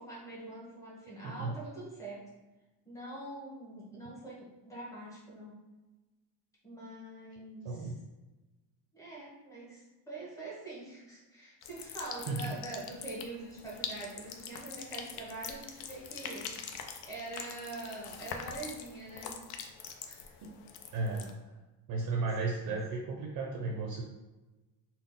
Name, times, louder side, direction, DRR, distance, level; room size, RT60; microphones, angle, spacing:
voice 1, 0.0-2.2 2.8-5.6 6.6-7.9 8.9-16.5 17.0-19.4 20.0-20.3, right 2 dB, 10° left, -6 dB, 1.0 m, -44 dB
sound 1, 11.6-21.3, left 7 dB, 80° left, 0.5 m, -44 dB
voice 2, 20.9-21.3 21.9-24.0, right 3 dB, 50° right, 1 dB, 0.5 m, -34 dB
3.8 x 2.1 x 3.6 m, 1.1 s
cardioid pair, 165°, 38 cm